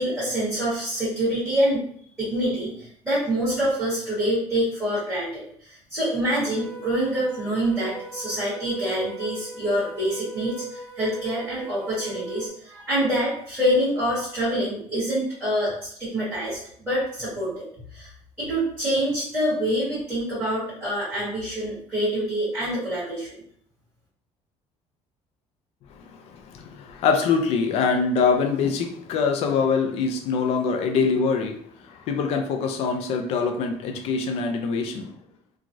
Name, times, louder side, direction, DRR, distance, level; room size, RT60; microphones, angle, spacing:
voice 1, 0.0-1.9 2.2-17.7 17.9-18.1 18.4-23.4, equal, 5° right, -14 dB, 1.4 m, -26 dB
sound 1, 6.5-12.5, right 4 dB, 50° right, 0.8 m, -37 dB
voice 2, 25.9-35.1, left 5 dB, 55° left, 5 dB, 0.4 m, -24 dB
3.0 x 2.3 x 2.5 m, 0.62 s
cardioid pair, 175°, 12 cm